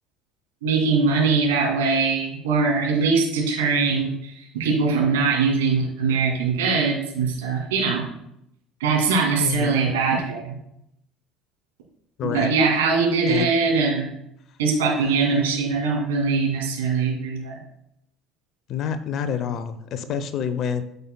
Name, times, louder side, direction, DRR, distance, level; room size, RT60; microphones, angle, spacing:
voice 1, 0.6-8.0 8.8-10.6 12.2-14.1 14.6-17.6, right 4 dB, 75° right, -1 dB, 2.4 m, -22 dB
voice 2, 9.4-9.8 12.2-12.5 13.3-13.6 18.7-20.8, left 7 dB, 50° left, 12 dB, 0.7 m, -27 dB
13.5 x 5.4 x 2.2 m, 0.80 s
figure-of-eight pair, 60°, 0 cm